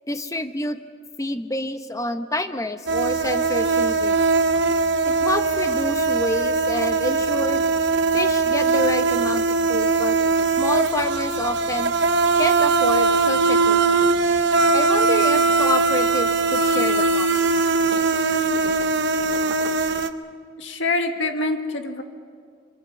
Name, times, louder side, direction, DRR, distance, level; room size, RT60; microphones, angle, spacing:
voice 1, 0.1-0.8 1.2-4.2 5.2-7.6 8.1-10.2 10.6-11.9 12.4-14.1 14.7-17.4, left 1 dB, 15° left, 9 dB, 0.8 m, -28 dB
sound 1, 2.9-20.1, right 3 dB, 65° right, 0.9 m, -20 dB
voice 2, 20.6-22.0, left 2 dB, 70° left, 5 dB, 1.9 m, -25 dB
24.5 x 24.0 x 6.1 m, 2.1 s
head